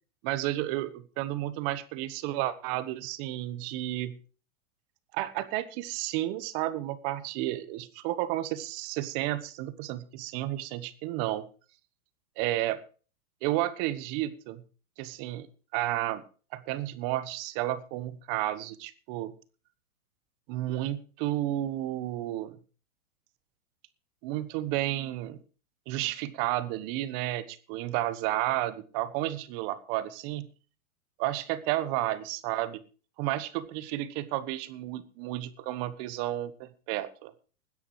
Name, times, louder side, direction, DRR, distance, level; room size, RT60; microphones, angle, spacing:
voice 1, 0.2-4.2 5.1-11.4 12.4-12.8 13.4-14.6 15.0-15.5 15.7-16.2 16.5-19.3 20.5-22.5 24.2-25.4 25.9-30.5 31.2-32.8 33.2-37.3, right 15 dB, 40° right, 15 dB, 1.2 m, -32 dB
20.5 x 10.0 x 3.2 m, 0.37 s
hypercardioid pair, 135°, 43 cm